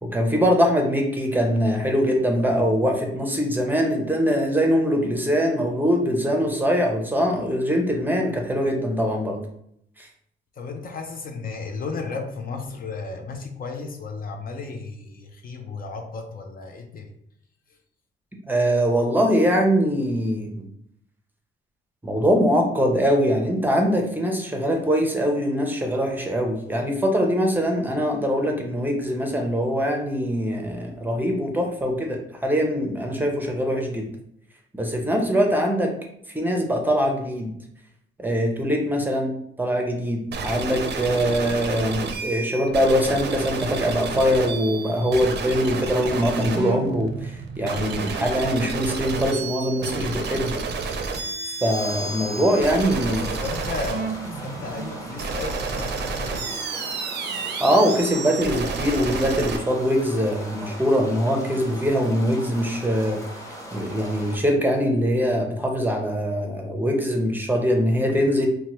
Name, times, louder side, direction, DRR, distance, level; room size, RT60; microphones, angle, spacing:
voice 1, 0.0-9.4 10.0-10.1 18.5-20.5 22.0-34.1 34.7-35.9 36.3-37.5 38.2-50.6 50.8-50.9 51.6-53.2 57.6-63.2 63.7-68.5, equal, 10° right, 1 dB, 0.6 m, -22 dB
voice 2, 10.6-17.1 53.1-56.5, left 4 dB, 45° left, 3 dB, 0.5 m, -34 dB
sound 1, 40.3-59.6, right 4 dB, 55° right, 0.5 m, -30 dB
sound 2, 51.7-64.4, equal, 15° left, 1.0 m, -39 dB
2.8 x 2.2 x 3.0 m, 0.71 s
cardioid pair, 90°, 20 cm